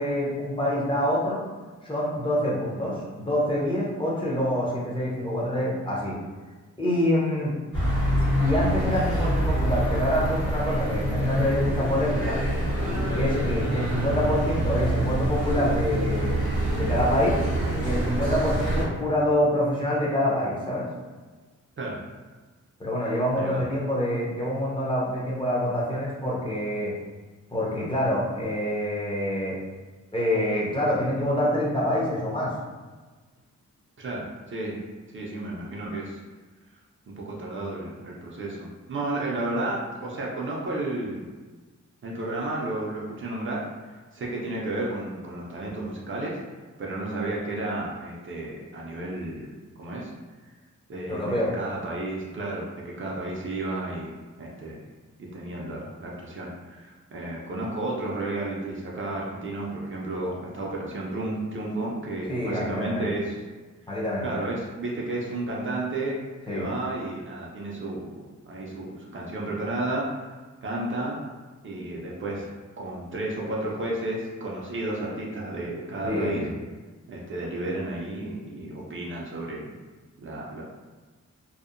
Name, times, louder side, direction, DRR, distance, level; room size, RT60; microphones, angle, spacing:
voice 1, 0.0-1.4 1.8-6.2 6.8-7.5 8.4-12.4 13.1-16.3 16.7-17.5 17.8-20.9 22.8-26.9 27.5-29.6 30.1-32.5 51.1-51.5 62.3-63.1 63.9-64.3 66.5-66.7 76.0-76.5, left 1 dB, 15° left, -6 dB, 0.5 m, -26 dB
sound 1, 7.7-18.8, right 1 dB, 70° left, 1.3 m, -26 dB
voice 2, 23.3-23.6 34.0-34.8 35.1-36.2 37.2-41.3 42.0-43.7 44.1-46.4 46.8-49.5 49.8-50.1 50.9-54.1 54.4-54.9 55.2-63.4 63.8-63.9 64.2-66.2 66.5-70.3 70.6-71.2 71.6-76.4 77.1-79.7 80.2-80.6, right 2 dB, 40° right, -3 dB, 0.4 m, -32 dB
2.7 x 2.0 x 2.4 m, 1.3 s
wide cardioid pair, 150°, 31 cm